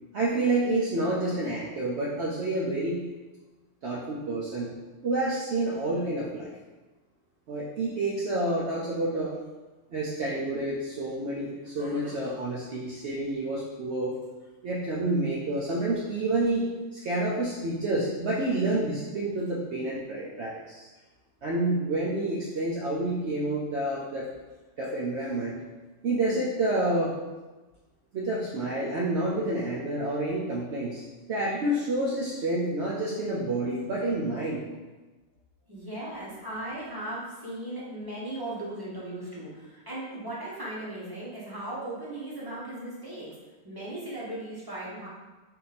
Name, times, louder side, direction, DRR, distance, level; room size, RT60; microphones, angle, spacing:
voice 1, 0.1-3.0 3.8-4.7 5.0-6.5 7.5-9.3 9.9-14.1 14.6-20.9 21.4-24.3 24.8-25.6 26.0-27.1 28.1-31.0 31.3-34.6, right 2 dB, 60° right, -6 dB, 0.9 m, -29 dB
voice 2, 35.7-43.3 43.6-45.1, right 1 dB, 20° right, -7 dB, 0.9 m, -37 dB
3.9 x 2.7 x 4.1 m, 1.2 s
omnidirectional pair, 1.4 m